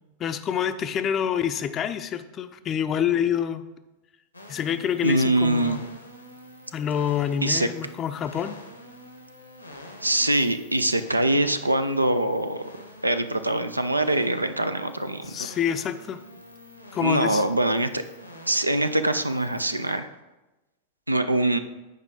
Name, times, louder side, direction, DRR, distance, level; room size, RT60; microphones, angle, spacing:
voice 1, 0.2-3.7 4.5-5.8 6.7-8.6 15.3-16.2 16.9-17.4, left 9 dB, 30° left, 11 dB, 0.5 m, -27 dB
sound 1, 4.3-20.0, left 1 dB, 85° left, 1.1 m, -46 dB
voice 2, 5.0-5.8 7.4-7.7 10.0-12.6 13.0-15.3 17.0-18.0 18.5-20.1 21.1-21.6, right 1 dB, 85° right, 10 dB, 0.4 m, -23 dB
8.3 x 4.9 x 5.0 m, 1.1 s
figure-of-eight pair, 90°, 0 cm